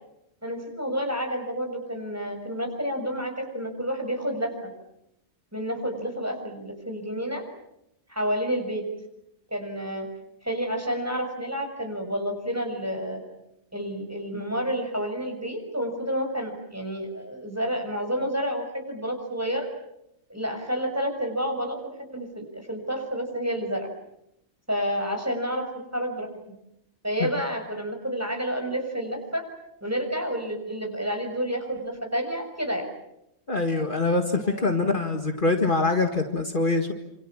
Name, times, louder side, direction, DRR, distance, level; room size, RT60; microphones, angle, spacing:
voice 1, 0.4-4.5 5.5-7.4 8.1-8.8 9.5-10.1 10.4-13.2 13.7-19.7 20.3-21.8 22.1-23.9 24.7-25.6 25.9-26.3 27.0-29.5 29.8-32.8 34.4-35.1, equal, 15° right, 3 dB, 6.5 m, -29 dB
voice 2, 33.5-36.9, left 3 dB, 45° left, 4 dB, 2.1 m, -24 dB
28.5 x 27.0 x 7.4 m, 0.81 s
omnidirectional pair, 1.2 m